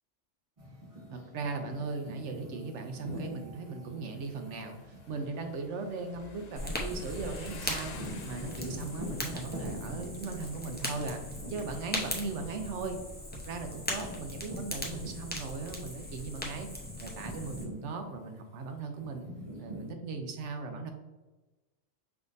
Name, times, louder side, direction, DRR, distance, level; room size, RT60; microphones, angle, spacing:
sound 1, 0.6-15.7 16.1-19.9, equal, 30° right, 1.4 m, -46 dB
voice 1, 1.1-11.2 11.5-13.0 13.5-16.7 17.0-19.3 19.6-20.9, right 4 dB, 80° right, 5 dB, 1.0 m, -38 dB
Motorcycle, 4.0-12.3, left 4 dB, 65° left, 0.4 m, -51 dB
Fire, 6.6-17.6, left 1 dB, 10° left, 0.5 m, -39 dB
5.7 x 3.5 x 2.6 m, 1.2 s
omnidirectional pair, 1.2 m